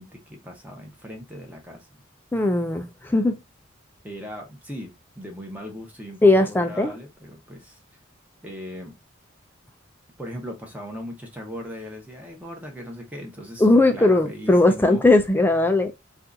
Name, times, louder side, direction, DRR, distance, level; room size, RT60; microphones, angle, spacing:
voice 1, 0.0-1.9 4.0-7.8 8.4-8.9 10.2-13.7 13.9-15.0, equal, 10° right, 0.9 m, -38 dB
voice 2, 2.3-3.4 6.2-6.9 13.6-15.9, left 2 dB, 10° left, 0.4 m, -18 dB
2.7 x 2.4 x 3.5 m
head